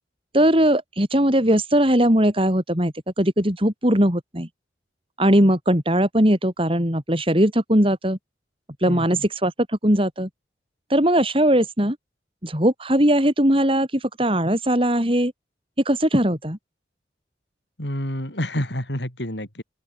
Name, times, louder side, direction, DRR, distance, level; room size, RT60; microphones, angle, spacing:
voice 1, 0.3-4.5 5.2-8.2 8.8-10.3 10.9-12.0 12.4-15.3 15.8-16.6, right 1 dB, 30° right, 5.6 m, -20 dB
voice 2, 8.9-9.2 17.8-19.6, left 1 dB, 75° left, 7.1 m, -28 dB
open air
head